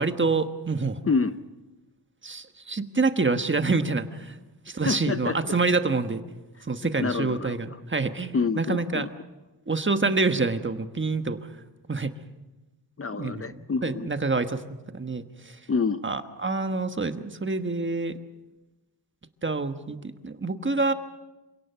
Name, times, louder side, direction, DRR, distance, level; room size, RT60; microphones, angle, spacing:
voice 1, 0.0-1.0 2.2-4.3 4.7-6.2 6.7-9.1 9.7-11.4 11.9-12.1 13.2-13.4 13.8-15.6 16.0-18.2 19.4-20.9, right 3 dB, 30° right, 9 dB, 1.3 m, -27 dB
voice 2, 4.8-5.5 7.0-7.8 8.3-9.1 13.0-14.1 15.7-16.0, left 4 dB, 35° left, 12 dB, 0.7 m, -27 dB
27.0 x 17.5 x 6.8 m, 1.1 s
wide cardioid pair, 90°, 41 cm